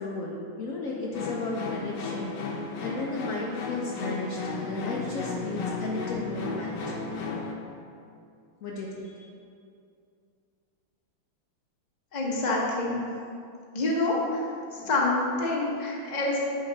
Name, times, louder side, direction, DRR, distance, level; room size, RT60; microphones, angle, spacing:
voice 1, 0.0-2.4 2.8-7.2 8.6-9.3, left 2 dB, 90° left, -3 dB, 0.7 m, -34 dB
sound 1, 1.1-7.5, left 4 dB, 65° left, 1.3 m, -34 dB
voice 2, 12.1-13.0 13.7-14.4 14.7-16.5, left 2 dB, 35° left, -3 dB, 0.7 m, -27 dB
9.1 x 4.4 x 3.9 m, 2.5 s
omnidirectional pair, 2.4 m